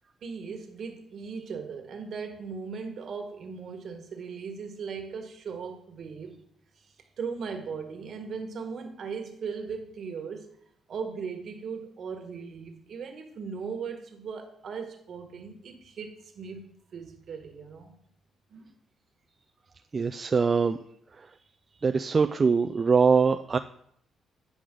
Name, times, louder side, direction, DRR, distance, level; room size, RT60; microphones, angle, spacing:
voice 1, 0.2-6.4 7.2-10.5 10.9-16.6 16.9-17.9 18.5-18.7, right 5 dB, 60° right, 5 dB, 1.4 m, -38 dB
voice 2, 19.9-20.8 21.8-23.6, right 5 dB, 35° right, 7 dB, 0.3 m, -23 dB
9.3 x 5.0 x 3.7 m, 0.68 s
cardioid pair, 90°, 0 cm